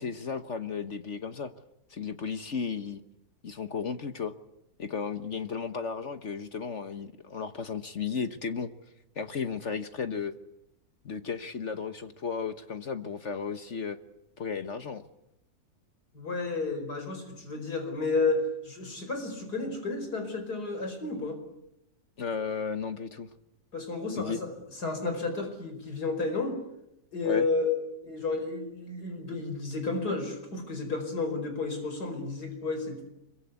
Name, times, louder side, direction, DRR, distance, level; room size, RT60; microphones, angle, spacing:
voice 1, 0.0-1.5 1.9-3.0 3.4-4.3 4.8-8.7 9.1-10.3 11.0-14.0 14.4-15.0 22.2-23.3 24.2-24.4 27.2-27.5, left 5 dB, 50° left, 9 dB, 1.4 m, -34 dB
voice 2, 16.1-21.4 23.7-26.6 27.1-27.8 28.0-33.0, left 3 dB, 85° left, 6 dB, 5.4 m, -31 dB
26.5 x 23.5 x 8.3 m, 0.84 s
omnidirectional pair, 1.6 m